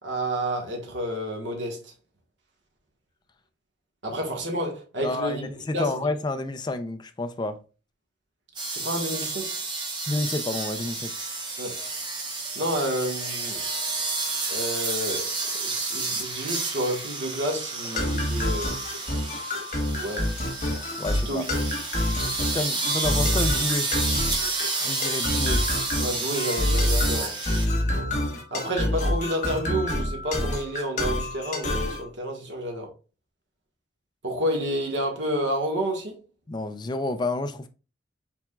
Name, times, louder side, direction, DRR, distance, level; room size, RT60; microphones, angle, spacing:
voice 1, 0.0-1.9 4.0-6.1 8.7-9.6 11.6-11.8 12.5-13.6 14.5-15.3 15.6-18.8 20.0-20.3 21.2-21.5 26.0-27.4 28.5-32.9 34.2-36.2, equal, 70° right, 1.3 m, -30 dB
voice 2, 5.0-7.6 10.1-11.1 21.0-21.4 22.4-23.9 24.8-25.7 36.5-37.7, left 2 dB, 25° left, 0.3 m, -29 dB
sound 1, 8.6-27.7, right 3 dB, 25° right, 0.9 m, -30 dB
sound 2, 18.0-32.0, left 1 dB, 40° left, 1.1 m, -27 dB
5.9 x 3.5 x 2.2 m
head